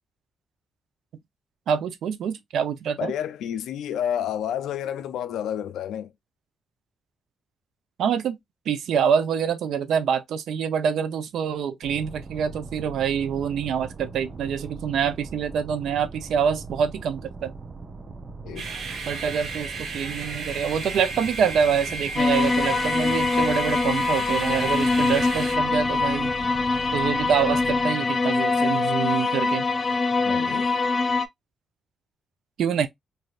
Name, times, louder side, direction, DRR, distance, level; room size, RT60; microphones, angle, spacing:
voice 1, 1.7-3.1 8.0-8.4 8.7-17.5 19.1-26.3 26.9-29.7 32.6-32.9, right 7 dB, 80° right, 0.5 m, -26 dB
voice 2, 3.0-6.1 18.4-18.7 30.2-30.7, left 10 dB, 90° left, 0.4 m, -30 dB
sound 1, 11.8-27.8, right 3 dB, 35° right, 0.7 m, -40 dB
sound 2, 18.6-25.6, right 3 dB, 60° right, 1.0 m, -34 dB
sound 3, 22.2-31.3, left 3 dB, 25° left, 0.5 m, -23 dB
3.2 x 2.6 x 2.4 m
cardioid pair, 95°, 0 cm